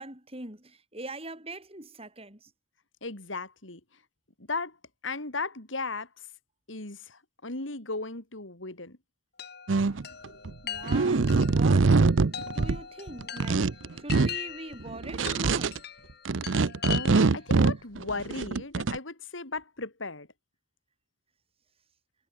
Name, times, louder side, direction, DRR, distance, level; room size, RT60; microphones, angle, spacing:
voice 1, 0.0-2.5 10.6-13.7 14.0-15.9 16.6-16.7, right 2 dB, 30° right, 7.9 m, -42 dB
voice 2, 3.0-3.8 4.5-4.8 5.0-6.1 6.7-9.0 16.8-20.3, left 3 dB, 80° left, 3.8 m, -36 dB
Chime, 9.4-17.5, left 9 dB, 55° left, 2.5 m, -41 dB
sound 1, 9.7-10.5 10.9-12.8 13.1-14.3 14.7-15.8 16.3-19.0, right 4 dB, 75° right, 0.7 m, -24 dB
head